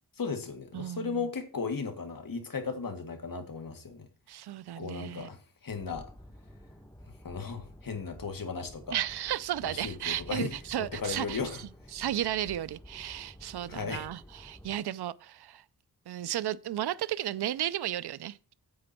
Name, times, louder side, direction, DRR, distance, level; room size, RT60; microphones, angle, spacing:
voice 1, 0.2-4.1 4.8-5.4 5.6-6.0 7.2-9.0 9.6-10.5 10.8-11.6 13.7-14.1, left 5 dB, 60° left, 2.0 m, -36 dB
voice 2, 0.7-1.3 4.3-5.3 8.9-15.6 16.1-18.4, right 12 dB, 80° right, 0.5 m, -34 dB
sound 1, 5.7-14.8, equal, 10° left, 3.4 m, -51 dB
9.6 x 7.6 x 4.3 m
wide cardioid pair, 90°, 39 cm